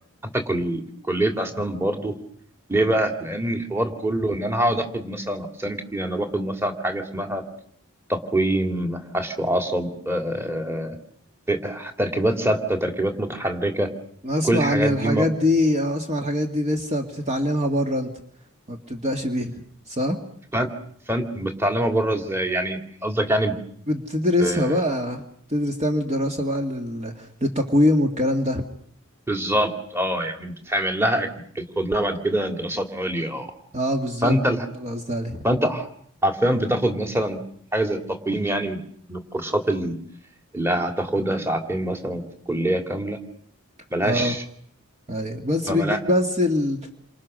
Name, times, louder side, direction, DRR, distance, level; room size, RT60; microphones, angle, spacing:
voice 1, 0.3-0.8 1.1-2.1 2.7-7.4 8.1-11.0 11.5-13.9 14.4-15.3 20.5-20.7 21.1-23.6 24.4-24.8 29.3-31.3 31.5-33.5 34.2-34.7 35.4-35.9 36.2-37.4 37.7-38.0 38.3-38.8 39.1-40.0 40.5-43.2 43.9-44.4 45.7-46.0, right 1 dB, 10° right, 4 dB, 2.7 m, -24 dB
voice 2, 14.2-18.1 18.7-19.6 19.9-20.2 23.9-25.2 25.5-28.6 33.7-34.4 34.7-35.4 44.0-44.3 45.1-46.9, left 1 dB, 30° right, 3 dB, 2.1 m, -23 dB
29.0 x 26.0 x 6.5 m, 0.63 s
head